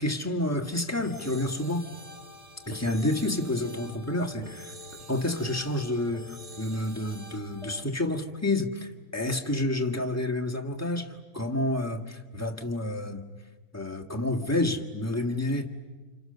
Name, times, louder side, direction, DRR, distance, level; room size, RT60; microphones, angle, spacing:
voice 1, 0.0-1.9 2.7-4.7 5.1-13.2 13.7-15.7, left 1 dB, 10° left, 1 dB, 1.6 m, -29 dB
sound 1, 1.0-7.8, equal, 25° right, 1.3 m, -46 dB
29.5 x 28.0 x 6.8 m, 1.3 s
omnidirectional pair, 1.6 m